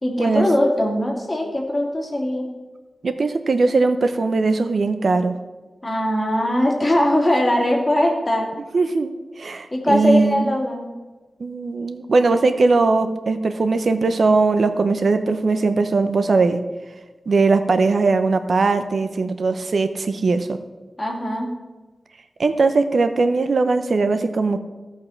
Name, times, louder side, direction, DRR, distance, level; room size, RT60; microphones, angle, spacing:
voice 1, 0.0-2.5 5.8-8.5 9.7-10.9 21.0-21.5, left 1 dB, 25° left, -1 dB, 2.7 m, -20 dB
voice 2, 3.0-5.3 8.7-10.6 11.4-16.6 17.3-20.6 22.4-24.6, right 3 dB, 70° right, 9 dB, 0.7 m, -19 dB
15.5 x 5.7 x 5.8 m, 1.2 s
wide cardioid pair, 110°, 0 cm